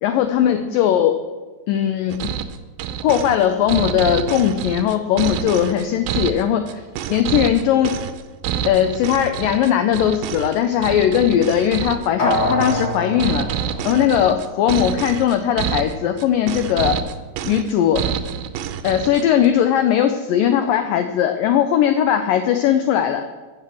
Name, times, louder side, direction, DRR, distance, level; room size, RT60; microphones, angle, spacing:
voice 1, 0.0-1.2 1.7-2.3 3.0-6.8 7.1-7.9 8.7-13.5 13.8-17.0 17.4-18.0 18.8-23.3, left 10 dB, 85° left, 8 dB, 1.9 m, -19 dB
sound 1, 2.1-19.5, right 9 dB, 75° right, 2.2 m, -27 dB
sound 2, 12.2-14.8 15.1-15.2, left 1 dB, 35° left, 4.7 m, -25 dB
16.5 x 7.8 x 7.7 m, 1.3 s
omnidirectional pair, 4.9 m